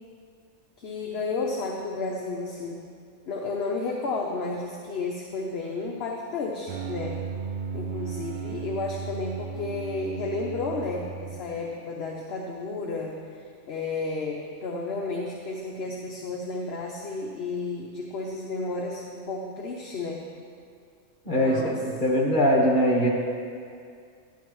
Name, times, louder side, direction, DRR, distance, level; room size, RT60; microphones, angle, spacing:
voice 1, 0.8-2.8 3.3-7.2 7.7-20.3 21.4-21.8, left 3 dB, 55° left, -1 dB, 1.0 m, -32 dB
sound 1, 6.7-11.9, right 7 dB, 80° right, 0.4 m, -35 dB
voice 2, 21.2-23.1, equal, 35° left, -4 dB, 1.8 m, -22 dB
12.0 x 10.5 x 3.1 m, 2.2 s
omnidirectional pair, 1.3 m